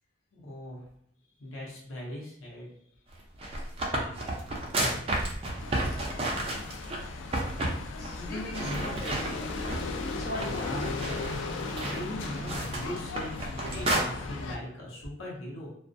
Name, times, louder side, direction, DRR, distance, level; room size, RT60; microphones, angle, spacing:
voice 1, 0.3-0.8 1.4-2.7 8.2-9.0 10.4-10.9 11.8-15.7, left 1 dB, 85° left, -4 dB, 0.7 m, -39 dB
sound 1, 3.2-7.0 7.3-7.8 8.0-8.2 8.5-10.0 10.3-14.0, right 1 dB, 30° right, 0.4 m, -32 dB
voice 2, 3.9-4.4 8.0-10.9, left 1 dB, 50° left, -6 dB, 0.7 m, -43 dB
sound 2, 5.6-14.6, left 3 dB, 70° left, 0.3 m, -36 dB
2.4 x 2.0 x 2.5 m, 0.72 s
head